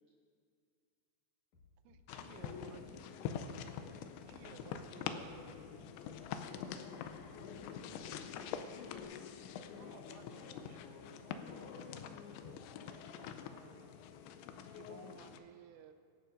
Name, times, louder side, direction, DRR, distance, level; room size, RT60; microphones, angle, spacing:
Bass drum, 1.5-2.0 2.3-3.0 3.3-3.9 4.2-4.8 5.2-5.8 6.1-6.7 7.0-7.6 8.0-8.6 8.9-9.0, left 5 dB, 65° left, 1.8 m, -63 dB
voice 1, 1.8-3.1 4.3-5.4 9.7-14.0 14.5-15.9, right 8 dB, 85° right, 7 dB, 3.3 m, -58 dB
sound 1, 2.1-15.4, left 8 dB, 85° left, 2.6 m, -45 dB
voice 2, 2.6-3.8 5.0-6.1 6.9-9.1, right 4 dB, 60° right, -4 dB, 2.4 m, -65 dB
sound 2, 4.1-5.8 6.1-6.4 7.1-9.0 9.8-9.9, right 1 dB, 40° right, 3.2 m, -61 dB
25.0 x 11.5 x 2.6 m, 2.3 s
omnidirectional pair, 5.7 m